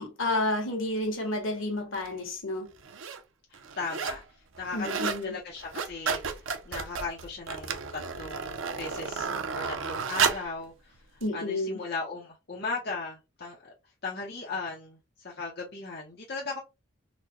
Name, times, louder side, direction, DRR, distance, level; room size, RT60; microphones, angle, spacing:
voice 1, 0.0-2.7 4.7-5.4 11.2-11.8, left 2 dB, 75° left, 1.3 m, -30 dB
sound 1, 1.9-2.1 2.8-3.2 3.5-4.2 4.5-5.2 5.6-10.5 11.2-11.3, right 6 dB, 75° right, 0.5 m, -32 dB
voice 2, 3.5-4.2 4.6-10.9 11.3-13.7 14.0-16.6, left 3 dB, 50° left, 0.8 m, -37 dB
4.1 x 2.2 x 3.0 m
head